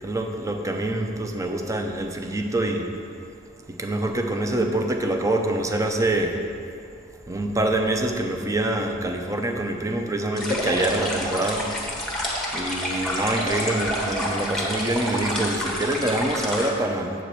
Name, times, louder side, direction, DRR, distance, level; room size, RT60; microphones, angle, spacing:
voice 1, 0.0-2.9 3.7-6.3 7.3-11.7 12.5-17.1, right 1 dB, 15° right, 4 dB, 0.6 m, -25 dB
sound 1, 10.4-16.7, equal, ahead, 1.1 m, -28 dB
7.6 x 4.5 x 6.7 m, 2.3 s
head